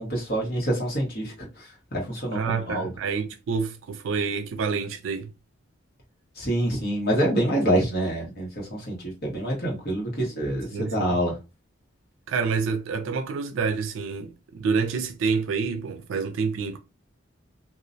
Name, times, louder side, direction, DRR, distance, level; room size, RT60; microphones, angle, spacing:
voice 1, 0.0-2.9 6.4-11.4, right 1 dB, 50° left, 1.0 m, -26 dB
voice 2, 2.3-5.3 10.7-11.2 12.3-16.8, right 5 dB, 80° right, 0.4 m, -28 dB
2.4 x 2.0 x 2.5 m
head